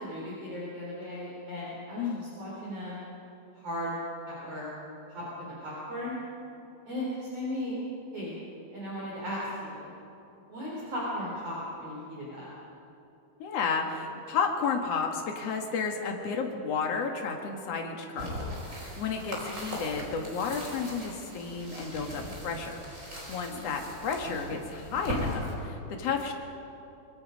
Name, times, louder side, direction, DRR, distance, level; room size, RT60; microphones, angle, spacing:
voice 1, 0.0-3.1 3.5-3.9 4.2-4.7 5.1-6.1 6.9-7.8 8.1-8.4 8.7-9.9 10.5-12.5 23.5-23.7, left 1 dB, 35° right, -6 dB, 4.7 m, -36 dB
voice 2, 1.9-2.3 13.4-22.7 23.0-26.3, left 5 dB, 70° left, 2 dB, 1.5 m, -32 dB
sound 1, 18.2-25.5, equal, 15° right, 4.4 m, -39 dB
25.0 x 22.0 x 5.2 m, 2.9 s
omnidirectional pair, 5.3 m